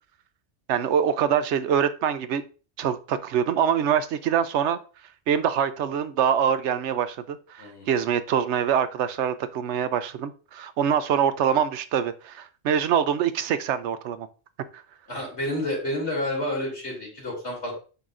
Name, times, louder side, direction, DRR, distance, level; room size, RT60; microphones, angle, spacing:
voice 1, 0.7-2.4 2.8-4.8 5.3-14.3 14.7-14.8, right 8 dB, 85° right, 0.9 m, -24 dB
voice 2, 7.6-7.9 15.1-17.7, left 1 dB, 80° left, 3.2 m, -29 dB
8.0 x 5.8 x 2.5 m
omnidirectional pair, 1.1 m